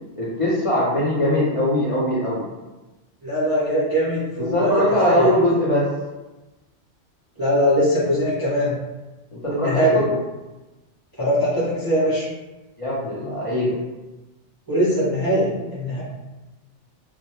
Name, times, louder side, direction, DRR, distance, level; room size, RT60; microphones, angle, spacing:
voice 1, 0.2-2.4 4.4-5.9 9.3-10.2 12.8-13.8, left 1 dB, 50° left, -8 dB, 0.4 m, -21 dB
voice 2, 3.2-4.7 5.1-5.3 7.4-8.7 9.5-10.0 11.2-12.3 14.7-16.0, equal, 30° right, -10 dB, 0.4 m, -21 dB
2.2 x 2.0 x 2.8 m, 1.1 s
omnidirectional pair, 1.3 m